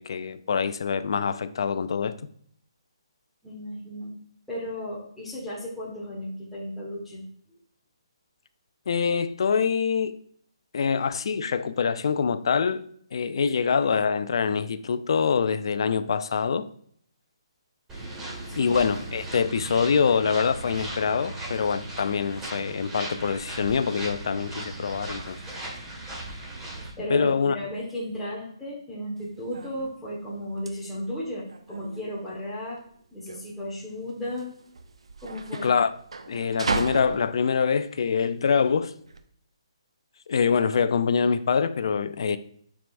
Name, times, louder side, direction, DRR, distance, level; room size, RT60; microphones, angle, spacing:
voice 1, 0.0-2.2 8.9-10.2 10.7-12.9 13.1-16.7 18.5-25.4 27.1-27.6 35.6-35.9 36.3-38.9 40.3-42.4, left 6 dB, 60° left, 0.5 m, -25 dB
voice 2, 3.4-4.2 4.5-7.2 7.5-7.6 18.5-18.7 27.0-32.8 33.1-34.5 35.2-35.7, equal, 5° left, 1.4 m, -34 dB
sound 1, 17.9-26.9, right 2 dB, 15° right, 1.8 m, -37 dB
sound 2, 29.2-39.2, right 3 dB, 80° right, 0.7 m, -36 dB
8.8 x 4.8 x 2.6 m
hypercardioid pair, 150°, 3 cm